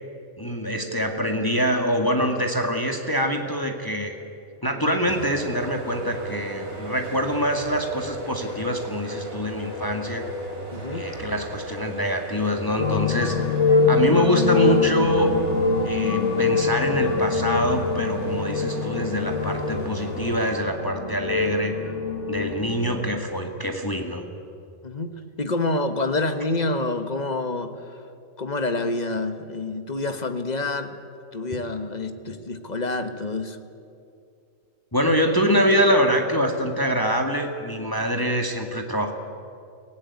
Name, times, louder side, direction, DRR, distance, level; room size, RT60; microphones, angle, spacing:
voice 1, 0.4-4.1 4.6-10.2 10.9-13.4 13.9-15.3 15.8-21.8 22.3-24.3 34.9-39.1, equal, 15° left, 3 dB, 1.7 m, -24 dB
sound 1, 5.0-20.5, right 1 dB, 55° right, 3.6 m, -35 dB
voice 2, 10.7-11.0 24.8-25.1 25.4-27.7 28.4-31.0 31.3-33.6, left 2 dB, 30° left, 8 dB, 1.3 m, -27 dB
sound 2, 12.8-23.1, left 4 dB, 60° left, 1.5 m, -24 dB
24.5 x 17.0 x 9.6 m, 2.5 s
omnidirectional pair, 1.4 m